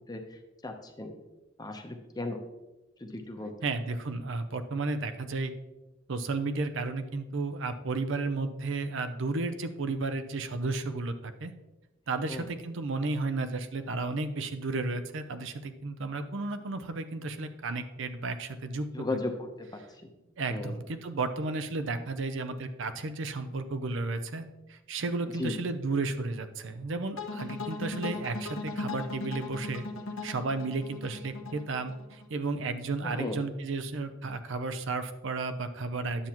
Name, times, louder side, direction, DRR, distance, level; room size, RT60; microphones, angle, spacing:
voice 1, 0.1-1.1 1.6-2.4 3.0-3.5 12.3-12.5 18.9-19.8 20.5-20.8 25.4-25.5 33.0-33.4, left 2 dB, 20° left, 4 dB, 0.8 m, -36 dB
voice 2, 3.6-5.5 6.1-11.5 12.1-18.9 20.4-29.8 30.2-36.3, right 3 dB, 65° right, 9 dB, 0.6 m, -33 dB
sound 1, 27.2-32.3, left 3 dB, 80° left, 1.0 m, -38 dB
9.8 x 7.1 x 3.0 m, 1.0 s
head